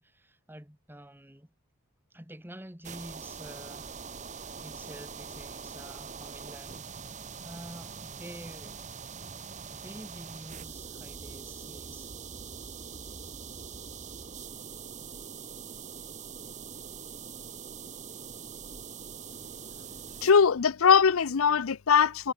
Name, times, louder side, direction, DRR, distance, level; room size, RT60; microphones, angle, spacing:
voice 1, 0.0-1.5 2.1-4.0 4.4-6.9 7.4-8.8 9.7-12.1, right 1 dB, 10° right, 1.9 m, -48 dB
sound 1, 2.8-20.3, right 6 dB, 35° right, 1.4 m, -43 dB
voice 2, 20.2-22.3, left 6 dB, 80° left, 0.6 m, -21 dB
head